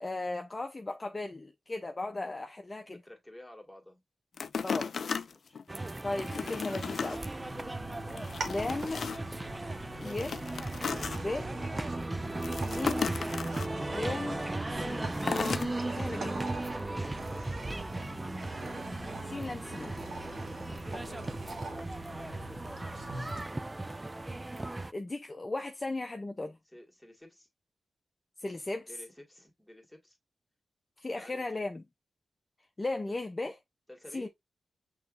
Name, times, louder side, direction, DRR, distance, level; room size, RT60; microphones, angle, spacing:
voice 1, 0.0-3.0 4.6-4.9 6.0-7.2 8.4-9.1 10.0-10.4 11.2-11.5 12.5-13.2 13.9-14.4 14.7-15.2 16.0-16.4 19.2-19.9 24.9-26.6 28.4-28.9 31.0-31.8 32.8-33.6 34.1-34.3, left 2 dB, 30° left, 0.7 m, -36 dB
voice 2, 3.1-4.0 5.2-5.6 15.8-16.3 16.7-17.5 20.7-21.1 21.6-22.1 23.7-24.0 26.7-27.5 28.9-30.2 31.1-31.7 33.1-33.2 33.9-34.3, left 1 dB, 5° left, 2.0 m, -52 dB
sound 1, 4.4-5.6 6.1-7.2 7.6-7.7 8.1-9.3 10.0-11.2 12.4-13.7 15.1-15.7 16.3-16.4, left 6 dB, 70° left, 0.4 m, -35 dB
sound 2, 5.7-24.9, right 2 dB, 25° right, 0.3 m, -37 dB
sound 3, 7.4-23.4, right 2 dB, 75° right, 1.4 m, -45 dB
6.0 x 3.1 x 2.6 m
cardioid pair, 55°, 0 cm